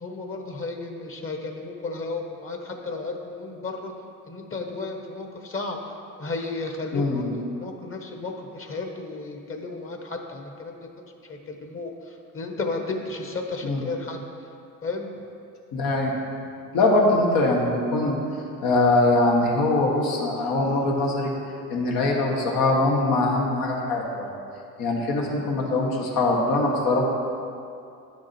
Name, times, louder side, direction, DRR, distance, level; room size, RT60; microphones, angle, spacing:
voice 1, 0.0-3.9 4.3-5.8 6.2-10.8 11.2-11.9 12.3-14.3 14.8-15.1, left 3 dB, 40° left, 3 dB, 1.2 m, -33 dB
voice 2, 6.9-7.3 13.6-13.8 15.7-16.1 16.7-18.2 18.6-21.3 21.7-24.3 24.8-27.1, left 2 dB, 80° left, -1 dB, 1.6 m, -22 dB
9.8 x 6.3 x 4.4 m, 2.5 s
supercardioid pair, 80°, 35 cm